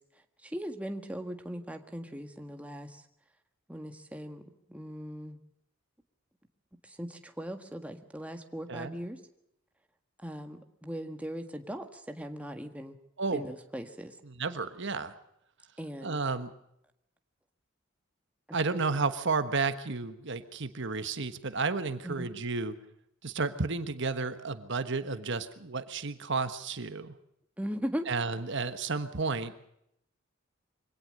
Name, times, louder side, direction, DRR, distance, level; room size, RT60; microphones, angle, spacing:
voice 1, 0.4-3.0 3.7-4.4 4.7-5.4 6.8-9.2 10.2-13.0 13.3-14.2 15.8-16.2 18.5-18.9 22.0-22.3 27.6-28.1, equal, 5° right, 6 dB, 1.6 m, -39 dB
voice 2, 14.2-15.2 16.0-16.5 18.5-22.7 23.2-27.2 28.1-29.5, right 4 dB, 60° right, 11 dB, 1.4 m, -32 dB
24.0 x 17.5 x 6.5 m, 0.76 s
head